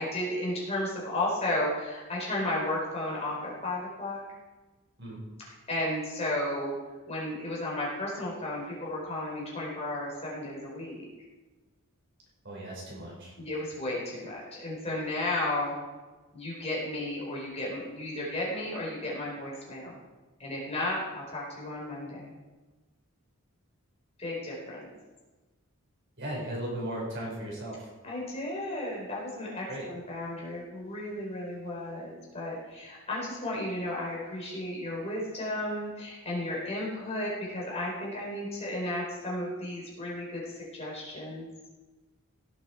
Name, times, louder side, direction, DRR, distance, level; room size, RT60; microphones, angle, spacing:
voice 1, 0.0-4.2 5.7-6.7 7.1-11.0 13.4-15.7 16.3-20.0 20.4-22.3 24.2-24.8 28.0-41.5, left 1 dB, 30° left, -5 dB, 4.8 m, -33 dB
voice 2, 12.4-13.3 26.2-27.9 29.7-29.9, right 1 dB, 55° right, -4 dB, 4.9 m, -36 dB
17.0 x 8.6 x 4.6 m, 1.2 s
head